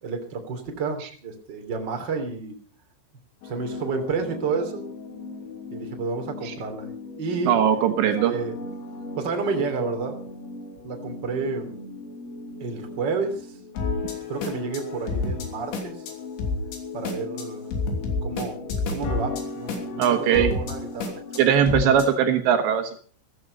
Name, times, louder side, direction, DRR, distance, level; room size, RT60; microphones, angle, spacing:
voice 1, 0.0-2.5 3.4-4.9 5.7-6.9 7.2-7.5 8.3-8.5 9.1-10.1 10.8-11.8 12.6-13.6 14.3-16.0 16.9-17.7 18.2-21.4, right 4 dB, 30° right, 4 dB, 2.9 m, -30 dB
sound 1, 3.4-22.1, left 3 dB, 75° left, 5.3 m, -33 dB
voice 2, 7.4-8.3 20.0-20.5 21.4-23.0, right 8 dB, 75° right, 6 dB, 3.4 m, -20 dB
15.0 x 15.0 x 5.3 m, 0.42 s
omnidirectional pair, 5.5 m